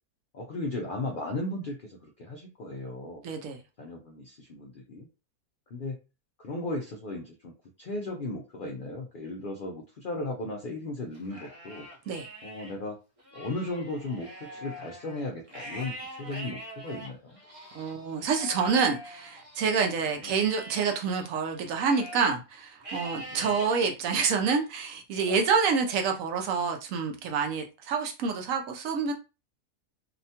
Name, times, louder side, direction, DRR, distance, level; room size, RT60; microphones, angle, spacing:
voice 1, 0.3-3.3 3.8-5.1 5.7-6.0 6.4-7.5 7.8-11.9 12.4-13.0 13.3-17.4 20.1-20.3 23.3-23.6, left 2 dB, 65° left, 0 dB, 0.5 m, -36 dB
voice 2, 3.2-3.6 12.1-12.3 17.7-29.1, right 5 dB, 75° right, 4 dB, 1.0 m, -27 dB
Livestock farm animals working animals, 11.1-12.7 13.2-19.7 20.2-22.3 22.8-23.7 24.3-24.7 25.3-26.3, equal, 30° right, 0.7 m, -44 dB
2.8 x 2.2 x 2.7 m, 0.30 s
omnidirectional pair, 1.5 m